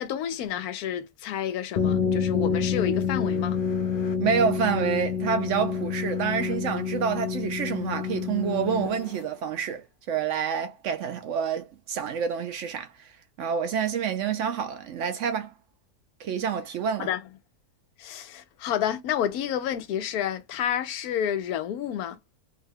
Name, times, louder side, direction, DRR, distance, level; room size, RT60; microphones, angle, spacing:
voice 1, 0.0-3.6 17.0-17.2 18.0-22.2, left 10 dB, 80° left, 1.1 m, -30 dB
sound 1, 1.8-9.2, left 6 dB, 60° left, 0.5 m, -28 dB
voice 2, 4.2-13.1 13.4-15.5 16.2-17.1, right 7 dB, 65° right, 0.8 m, -28 dB
3.5 x 2.2 x 3.2 m
omnidirectional pair, 1.6 m